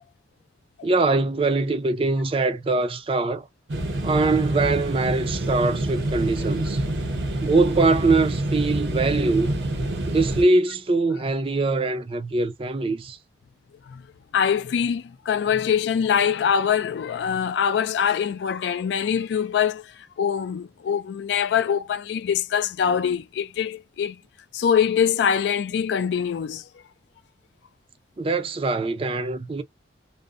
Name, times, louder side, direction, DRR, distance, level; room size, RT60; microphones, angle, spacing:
voice 1, 0.8-3.5 4.0-6.8 7.4-9.6 10.1-13.2 28.2-29.6, right 3 dB, 30° right, 0.4 m, -23 dB
sound 1, 3.7-10.4, right 1 dB, 80° right, 0.7 m, -27 dB
voice 2, 14.3-19.9 20.2-24.2 24.5-26.6, left 7 dB, 80° left, 0.3 m, -23 dB
2.6 x 2.0 x 2.4 m
head